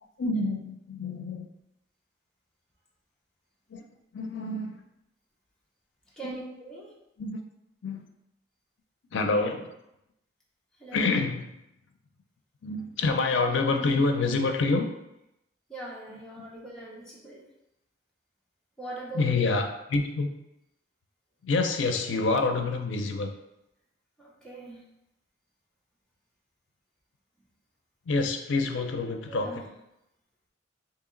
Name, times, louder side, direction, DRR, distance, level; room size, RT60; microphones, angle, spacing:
voice 1, 0.2-1.5 3.7-3.8 4.1-4.8 6.2-6.4 7.2-7.4 7.8-8.0 9.1-9.7 10.9-11.5 12.6-14.9 16.1-16.4 19.1-20.3 21.4-23.3 28.1-29.6, left 3 dB, 80° left, 5 dB, 0.5 m, -27 dB
voice 2, 6.2-6.9 10.8-11.2 15.7-17.4 18.8-19.2 24.2-24.8 29.3-29.6, right 2 dB, 5° left, -6 dB, 0.7 m, -41 dB
2.8 x 2.8 x 3.7 m, 0.86 s
head